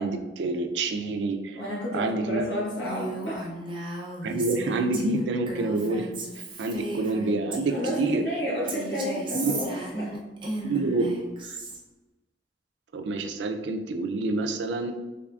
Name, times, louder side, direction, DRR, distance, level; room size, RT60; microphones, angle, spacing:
voice 1, 0.0-1.6 1.9-2.5 4.2-6.1 6.6-8.2 9.3-9.5 10.6-11.1 11.4-11.6 12.9-14.9, right 3 dB, 85° right, 6 dB, 0.4 m, -27 dB
voice 2, 1.6-3.4 7.7-10.1, equal, 70° left, -5 dB, 1.3 m, -31 dB
Female speech woman speaking, 2.8-8.2 8.7-11.8, right 2 dB, 30° right, 0.5 m, -35 dB
3.6 x 3.2 x 2.3 m, 1.1 s
head